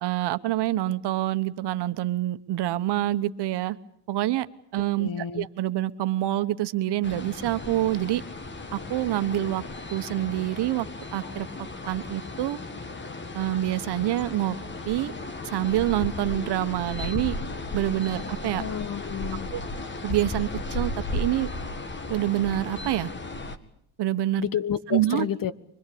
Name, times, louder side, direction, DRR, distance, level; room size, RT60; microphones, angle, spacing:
voice 1, 0.0-3.8 4.1-4.5 4.7-8.2 8.7-9.6 9.9-10.9 11.1-11.5 11.9-12.6 13.3-14.6 14.9-15.1 15.4-17.4 17.7-18.6 19.5-19.6 20.0-21.5 22.1-23.1 24.0-24.5 24.9-25.2, right 14 dB, 70° right, 13 dB, 1.2 m, -26 dB
voice 2, 5.0-5.5 18.5-19.5 24.4-25.5, left 9 dB, 50° left, 16 dB, 1.3 m, -30 dB
sound 1, 7.0-23.6, left 2 dB, 25° left, 2.0 m, -35 dB
25.0 x 21.5 x 8.6 m, 0.70 s
cardioid pair, 95°, 42 cm